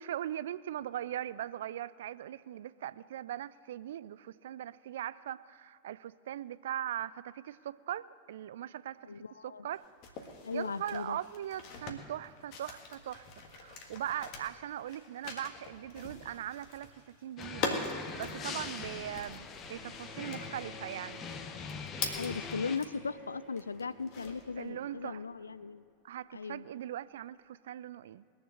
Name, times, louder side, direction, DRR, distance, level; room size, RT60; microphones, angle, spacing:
voice 1, 0.0-9.8 10.5-17.0 17.2-21.2 24.6-25.2 26.0-28.2, right 11 dB, 60° right, 18 dB, 0.3 m, -40 dB
voice 2, 9.0-9.7 10.4-11.2 22.1-25.8 26.3-26.7, left 5 dB, 75° left, 18 dB, 0.3 m, -38 dB
sound 1, 9.7-23.1 23.5-24.6, left 4 dB, 45° left, 1.6 m, -43 dB
sound 2, 17.4-22.8, left 5 dB, 25° left, 0.9 m, -42 dB
Bowed string instrument, 19.8-25.8, equal, 5° left, 2.1 m, -53 dB
20.5 x 7.2 x 6.4 m, 2.4 s
figure-of-eight pair, 90°, 0 cm